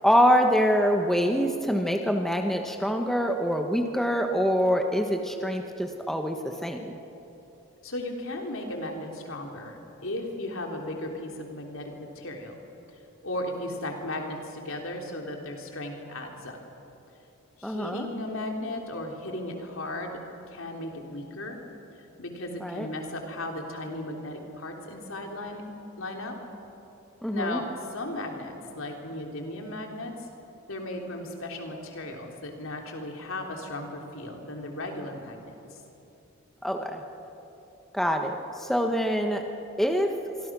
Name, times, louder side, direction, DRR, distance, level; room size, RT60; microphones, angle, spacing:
voice 1, 0.0-7.0 17.6-18.1 22.6-22.9 27.2-27.6 36.6-37.0 37.9-39.4 39.8-40.1, equal, ahead, 4 dB, 1.2 m, -25 dB
voice 2, 7.8-12.5 13.2-16.6 17.6-20.2 20.5-21.6 22.2-25.6 26.0-26.3 27.3-30.1 30.7-35.8, left 1 dB, 75° left, 2 dB, 3.5 m, -36 dB
26.0 x 24.5 x 6.2 m, 2.9 s
head